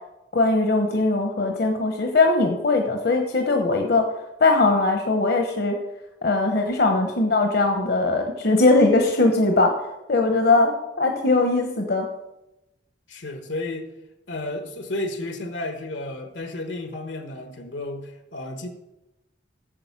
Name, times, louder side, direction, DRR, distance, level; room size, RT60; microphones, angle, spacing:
voice 1, 0.3-4.0 4.4-5.8 6.2-9.7 10.1-12.1, left 3 dB, 60° left, 4 dB, 1.0 m, -20 dB
voice 2, 13.1-13.9 14.3-18.7, left 2 dB, 85° left, 6 dB, 1.3 m, -32 dB
8.9 x 7.2 x 5.9 m, 0.93 s
head